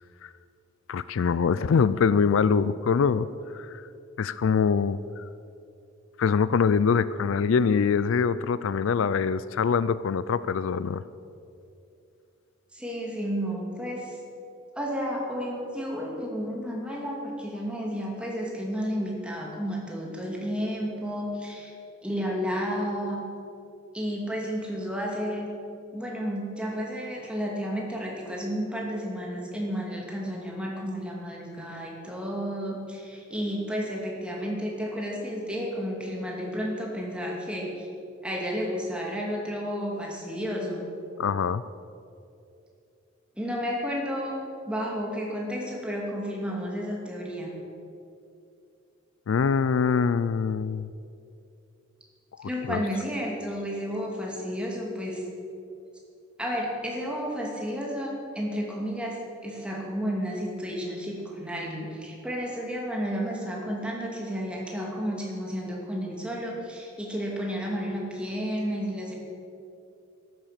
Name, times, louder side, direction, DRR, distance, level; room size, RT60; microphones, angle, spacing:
voice 1, 0.9-3.3 3.5-3.9 4.2-5.2 6.2-11.0 41.2-41.6 49.3-50.9 52.4-52.8, left 6 dB, 70° left, 16 dB, 0.4 m, -24 dB
voice 2, 12.7-14.2 14.8-21.7 22.0-23.2 23.9-25.5 25.9-37.9 38.2-40.9 43.4-44.3 44.7-47.5 52.4-55.2 56.4-69.1, equal, 5° right, -2 dB, 2.6 m, -32 dB
13.0 x 11.0 x 7.5 m, 2.6 s
head